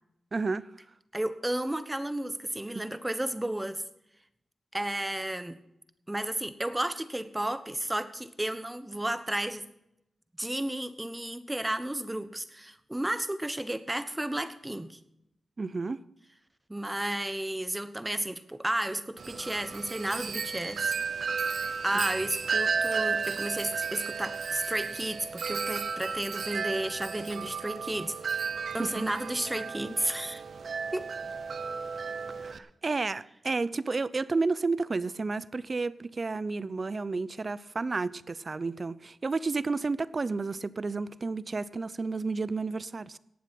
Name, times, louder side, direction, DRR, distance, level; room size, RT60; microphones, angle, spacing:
voice 1, 0.3-0.7 15.6-16.0 28.8-29.1 32.4-43.2, right 3 dB, 45° right, 0.6 m, -31 dB
voice 2, 1.1-3.8 4.7-5.6 6.1-9.7 10.4-15.0 16.7-20.9 21.8-28.5 28.7-30.4 30.9-31.1, right 1 dB, 15° right, 1.1 m, -33 dB
Wind chime, 19.2-32.6, right 5 dB, 65° right, 0.8 m, -33 dB
18.0 x 7.4 x 5.9 m
cardioid pair, 60°, 0 cm